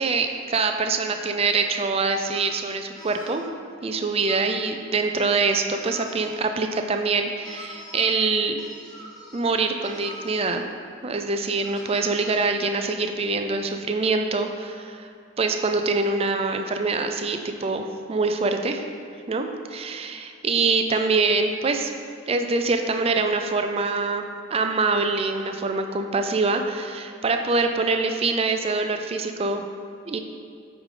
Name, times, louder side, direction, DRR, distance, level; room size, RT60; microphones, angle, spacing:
voice 1, 0.0-3.4 3.8-8.6 9.3-10.6 11.0-15.1 15.4-18.8 19.3-21.9 22.3-29.6 30.1-30.2, right 3 dB, 30° right, 6 dB, 0.4 m, -24 dB
sound 1, 1.5-1.6 2.1-2.5 2.9-3.4 4.3-4.6 5.7-6.5 7.4-8.1 8.6-9.5 9.8-10.6 11.6-12.4, left 1 dB, 20° left, 1.1 m, -43 dB
8.2 x 4.8 x 3.8 m, 2.3 s
head